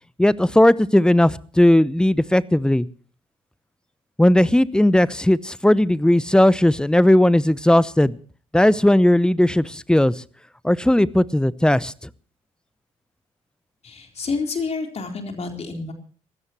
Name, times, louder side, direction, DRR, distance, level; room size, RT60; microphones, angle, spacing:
voice 1, 0.2-2.9 4.2-8.2 8.5-10.2 10.6-12.1, left 1 dB, 5° left, 20 dB, 0.8 m, -17 dB
voice 2, 13.8-15.9, left 4 dB, 40° left, 3 dB, 4.0 m, -29 dB
23.5 x 16.5 x 3.1 m, 0.43 s
figure-of-eight pair, 45°, 17 cm